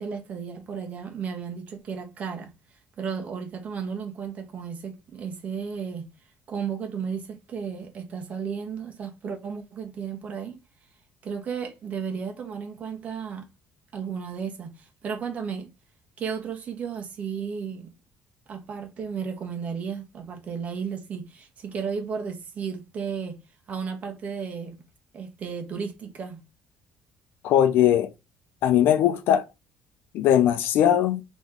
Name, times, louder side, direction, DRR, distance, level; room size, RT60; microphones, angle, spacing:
voice 1, 0.0-2.5 3.0-6.1 6.5-10.5 11.2-13.5 13.9-15.7 16.2-17.9 18.5-23.4 23.7-24.8 25.1-26.4, right 6 dB, 40° right, 1.2 m, -34 dB
voice 2, 27.4-28.1 28.6-29.5 30.1-31.2, left 10 dB, 80° left, 0.5 m, -20 dB
3.8 x 3.1 x 3.8 m
cardioid pair, 140°, 4 cm